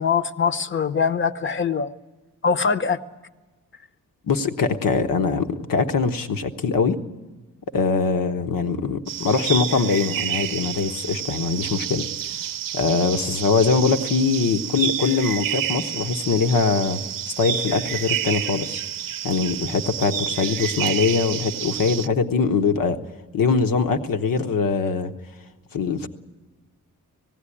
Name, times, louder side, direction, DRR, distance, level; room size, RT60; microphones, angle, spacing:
voice 1, 0.0-1.9 2.4-3.0, left 6 dB, 35° left, 13 dB, 0.8 m, -22 dB
voice 2, 4.3-7.0 7.7-12.0 12.7-17.0 17.4-18.8 19.2-23.0 23.3-25.1 25.7-26.1, left 5 dB, 80° left, 7 dB, 1.2 m, -22 dB
sound 1, 9.1-22.1, right 10 dB, 80° right, 0.6 m, -29 dB
18.5 x 16.5 x 10.0 m, 1.2 s
wide cardioid pair, 145°, 33 cm